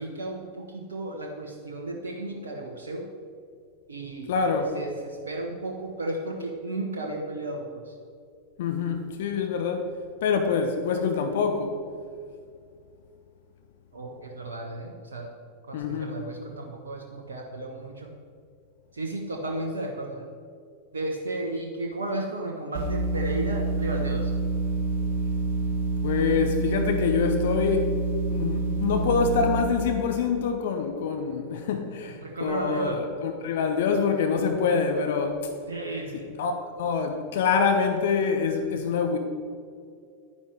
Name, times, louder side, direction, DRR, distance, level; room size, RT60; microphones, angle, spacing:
voice 1, 0.0-3.0 3.9-4.3 4.6-7.9 13.9-15.3 15.7-18.1 18.9-20.3 20.9-24.3 32.2-33.0 35.7-36.3, right 2 dB, 70° right, 1 dB, 1.2 m, -33 dB
voice 2, 4.3-4.8 8.6-9.9 10.2-11.8 15.7-16.2 26.0-28.0 28.3-35.5 36.1-39.2, left 5 dB, 55° left, 5 dB, 1.1 m, -25 dB
sound 1, 22.7-29.6, right 3 dB, 50° right, 2.0 m, -27 dB
11.0 x 9.9 x 4.7 m, 2.3 s
figure-of-eight pair, 90°, 0 cm